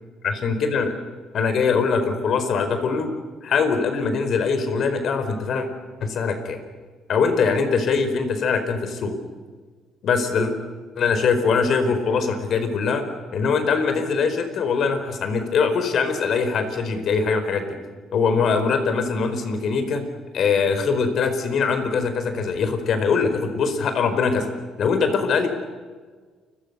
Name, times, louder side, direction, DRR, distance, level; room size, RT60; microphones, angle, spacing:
voice 1, 0.2-0.9 1.3-3.1 3.4-5.7 6.0-6.6 7.1-9.2 10.0-10.5 11.0-13.0 13.3-17.8 18.1-20.1 20.3-24.5 24.8-25.5, left 5 dB, 55° left, 8 dB, 4.6 m, -22 dB
29.5 x 23.0 x 6.9 m, 1.5 s
cardioid pair, 120°, 0 cm